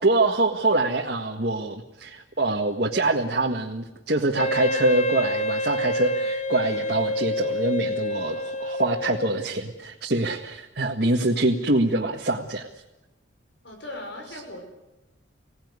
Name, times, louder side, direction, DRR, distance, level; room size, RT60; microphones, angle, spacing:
voice 1, 0.0-12.7, right 2 dB, 50° right, 0 dB, 1.7 m, -24 dB
Wind instrument woodwind instrument, 4.4-9.4, left 1 dB, 35° left, 1.1 m, -28 dB
voice 2, 13.6-14.6, left 1 dB, 65° left, 3 dB, 6.0 m, -38 dB
26.0 x 17.5 x 9.7 m, 1.0 s
head